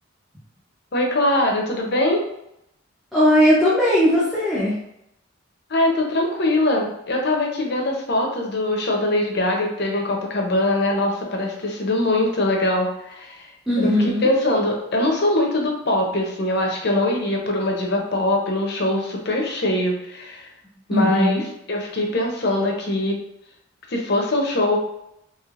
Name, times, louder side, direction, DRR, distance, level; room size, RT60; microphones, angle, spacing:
voice 1, 0.9-2.2 5.7-13.5 14.2-20.5 20.9-21.4 21.7-23.2 23.9-24.8, left 1 dB, 50° left, 1 dB, 0.6 m, -22 dB
voice 2, 3.1-4.8 13.7-14.3 20.9-21.4, equal, ahead, -9 dB, 0.5 m, -18 dB
3.2 x 2.9 x 2.4 m, 0.81 s
head